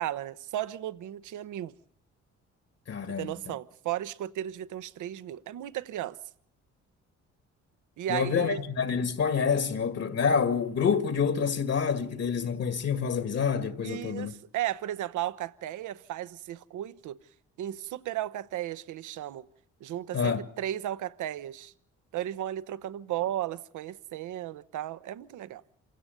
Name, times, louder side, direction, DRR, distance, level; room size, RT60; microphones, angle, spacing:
voice 1, 0.0-1.7 3.1-6.2 8.0-8.6 13.8-17.2 17.6-19.4 19.8-21.7 22.1-25.6, right 12 dB, 80° right, 0.9 m, -35 dB
voice 2, 2.9-3.6 8.1-14.3 20.1-20.4, left 6 dB, 55° left, 2.1 m, -27 dB
27.0 x 17.0 x 6.8 m
cardioid pair, 90°, 30 cm